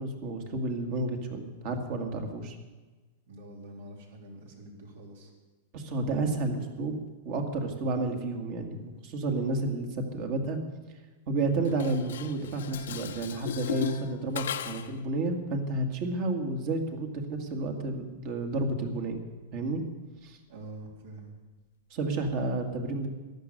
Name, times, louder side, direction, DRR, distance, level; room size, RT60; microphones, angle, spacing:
voice 1, 0.0-2.6 5.7-10.6 11.3-19.2 19.5-19.8 20.2-20.4 21.9-23.1, right 2 dB, 40° right, 4 dB, 2.1 m, -31 dB
voice 2, 3.3-5.3 20.5-21.3, right 1 dB, 70° right, 1 dB, 3.7 m, -46 dB
Dishes pots and pans, 11.6-15.0, left 9 dB, 85° left, 0.9 m, -37 dB
14.5 x 11.5 x 6.6 m, 1.2 s
supercardioid pair, 160°, 0 cm